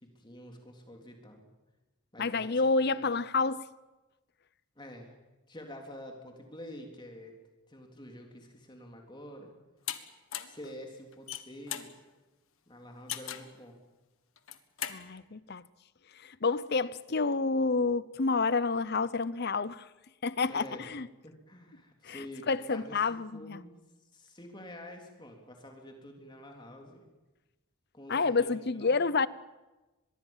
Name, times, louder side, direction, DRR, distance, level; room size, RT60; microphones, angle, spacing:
voice 1, 0.0-1.4 2.1-3.1 4.8-5.1 5.5-7.4 7.7-9.5 10.4-12.0 12.7-13.8 20.5-21.0 21.2-23.8 24.1-27.0 27.9-29.0, left 1 dB, 20° left, 3.6 m, -48 dB
voice 2, 2.2-3.7 14.9-15.6 16.2-19.9 20.2-21.1 22.0-23.6 28.1-29.3, left 4 dB, 45° left, 0.7 m, -29 dB
sound 1, 9.9-10.0 10.3-10.6 11.1-11.9 13.1-13.5 14.4-15.0, left 11 dB, 70° left, 1.6 m, -37 dB
24.5 x 21.5 x 7.4 m
head